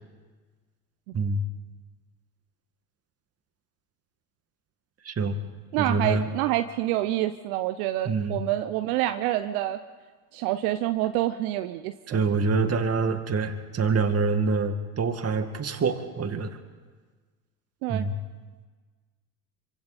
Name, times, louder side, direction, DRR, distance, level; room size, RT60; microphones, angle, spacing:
voice 1, 5.0-5.4 5.8-6.3 8.1-8.4 12.1-16.6 17.9-18.2, right 4 dB, 30° right, 7 dB, 2.2 m, -26 dB
voice 2, 5.7-9.8 10.3-12.2 17.8-18.1, right 14 dB, 70° right, 9 dB, 0.9 m, -27 dB
26.5 x 24.5 x 4.3 m, 1.4 s
hypercardioid pair, 70°, 45 cm